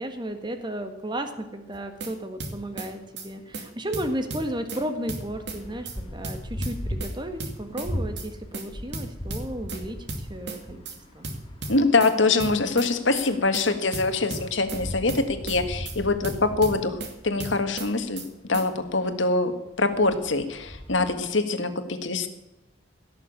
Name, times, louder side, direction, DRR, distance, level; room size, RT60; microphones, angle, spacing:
voice 1, 0.0-10.8 11.1-11.3, right 1 dB, 25° right, 6 dB, 1.6 m, -34 dB
sound 1, 1.7-2.1 2.4-2.9 3.2-3.3 3.5-3.7 3.9-4.8 5.1-5.6 5.8-6.0 6.2-7.1 7.4-7.9 8.2-8.3 8.5-8.7 8.9-9.8 10.1-10.6 10.8-11.0 11.2-12.1 12.4-12.9 13.2-13.3 13.5-13.7 13.9-14.8 15.1-15.6 15.8-16.0 16.2-17.1 17.4-17.9 18.2-18.3 18.5-18.7, right 2 dB, 60° right, 2.4 m, -34 dB
sound 2, 2.4-19.1 19.5-21.3, equal, 30° left, 2.3 m, -39 dB
voice 2, 11.7-18.2 18.5-19.5 19.8-22.3, left 3 dB, 65° left, 8 dB, 1.7 m, -24 dB
17.0 x 6.9 x 8.5 m, 1.0 s
head